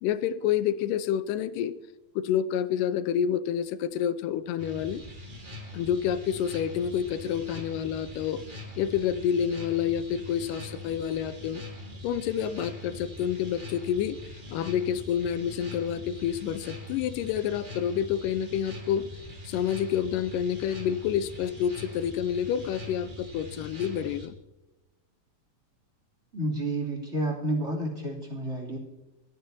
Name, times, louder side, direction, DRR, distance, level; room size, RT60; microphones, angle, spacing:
voice 1, 0.0-1.7 2.2-5.0 5.7-8.4 8.8-11.6 12.0-19.1 19.5-24.3, left 9 dB, 80° left, 13 dB, 2.2 m, -28 dB
sound 1, 4.6-24.3, left 1 dB, 40° right, 0.7 m, -43 dB
voice 2, 26.3-28.8, right 1 dB, 20° right, -2 dB, 2.9 m, -30 dB
23.5 x 10.5 x 2.7 m, 1.0 s
omnidirectional pair, 4.1 m